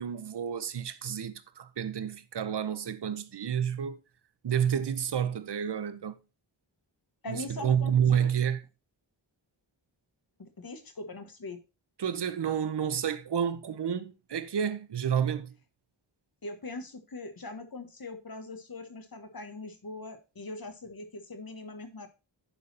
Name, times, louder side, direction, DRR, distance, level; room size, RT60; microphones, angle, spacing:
voice 1, 0.0-4.0 4.4-6.2 7.3-8.6 12.0-15.5, right 8 dB, 60° right, 0.8 m, -30 dB
voice 2, 7.2-8.3 10.4-11.6 16.4-22.1, left 2 dB, 50° left, 1.4 m, -41 dB
10.0 x 4.1 x 4.2 m
wide cardioid pair, 55°, 46 cm